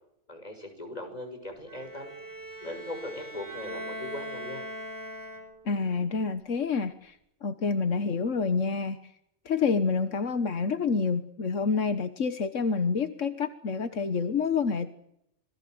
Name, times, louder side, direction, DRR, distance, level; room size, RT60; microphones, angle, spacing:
voice 1, 0.3-2.1 2.6-4.7, left 1 dB, 30° left, 4 dB, 6.6 m, -39 dB
Bowed string instrument, 1.7-5.8, equal, 15° right, 4.6 m, -41 dB
voice 2, 5.6-7.1 7.4-9.0 9.4-14.9, left 5 dB, 80° left, 9 dB, 1.7 m, -28 dB
27.0 x 19.5 x 7.8 m, 0.76 s
omnidirectional pair, 1.3 m